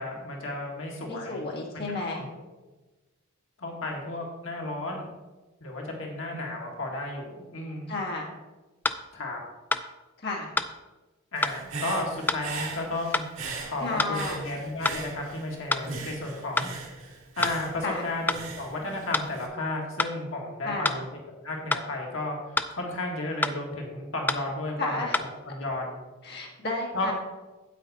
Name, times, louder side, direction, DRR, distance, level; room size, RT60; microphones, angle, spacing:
voice 1, 0.0-1.4 1.7-1.8 2.1-2.3 3.6-5.1 5.6-8.0 9.1-9.4 11.3-13.2 13.6-16.7 17.4-21.1 21.4-26.0 26.9-27.1, left 2 dB, 70° left, 0 dB, 1.8 m, -33 dB
voice 2, 1.1-2.2 7.9-8.3 10.2-10.5 13.8-14.4 17.8-18.0 20.6-21.0 24.8-25.1 26.2-27.1, left 2 dB, 50° left, -2 dB, 1.8 m, -32 dB
sound 1, 8.1-8.2 8.8-9.0 9.7-9.9 10.6-10.7 11.4-11.6 12.3-12.4 13.1-13.3 14.0-14.2 14.8-15.0 15.7-15.9 16.6-16.7 17.4-17.6 18.3-18.4 19.1-19.3 20.0-20.2 20.8-21.0 21.7-21.9 22.6-22.7 23.4-23.6 24.3-24.4 25.1-25.3, left 2 dB, 10° left, 0.3 m, -27 dB
Human voice / Breathing, 11.4-15.5 15.8-19.5, right 4 dB, 75° right, 1.9 m, -39 dB
9.2 x 8.2 x 4.1 m, 1.1 s
head